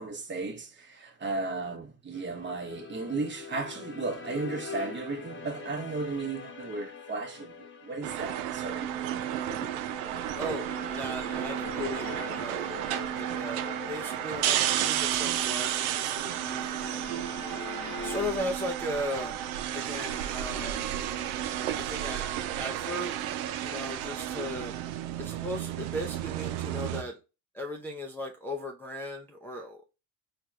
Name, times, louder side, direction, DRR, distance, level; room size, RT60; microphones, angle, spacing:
voice 1, 0.0-9.1, right 3 dB, 25° right, 1.0 m, -35 dB
sound 1, 2.1-18.3, left 5 dB, 30° left, 1.0 m, -44 dB
sound 2, 8.0-27.0, right 11 dB, 90° right, 0.6 m, -32 dB
voice 2, 10.3-12.8 13.1-13.6 13.9-17.0 18.0-19.4 19.7-21.0 21.3-21.4 21.7-23.3 23.6-24.8 25.2-27.2 27.5-29.9, left 1 dB, 5° left, 0.6 m, -37 dB
4.5 x 2.4 x 3.1 m
supercardioid pair, 100°, 42 cm